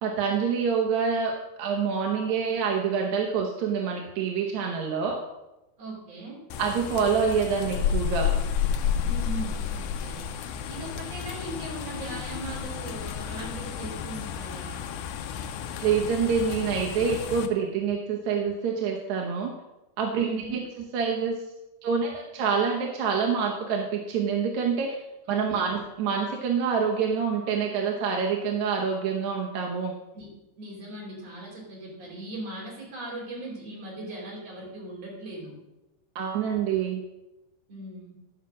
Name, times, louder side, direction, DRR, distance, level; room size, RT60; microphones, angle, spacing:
voice 1, 0.0-1.3 1.6-5.2 6.6-8.3 15.8-19.5 20.0-20.6 20.9-21.4 21.8-25.0 25.3-29.9 36.2-37.0, right 6 dB, 70° right, 0 dB, 1.9 m, -26 dB
voice 2, 5.8-6.4 9.0-10.3 10.7-14.9 20.2-20.6 25.3-25.7 30.1-30.3 30.6-35.6 37.7-38.2, right 2 dB, 45° right, -3 dB, 4.0 m, -39 dB
sound 1, 6.5-17.5, left 8 dB, 80° left, 2.0 m, -31 dB
12.5 x 5.8 x 6.1 m, 0.98 s
omnidirectional pair, 4.2 m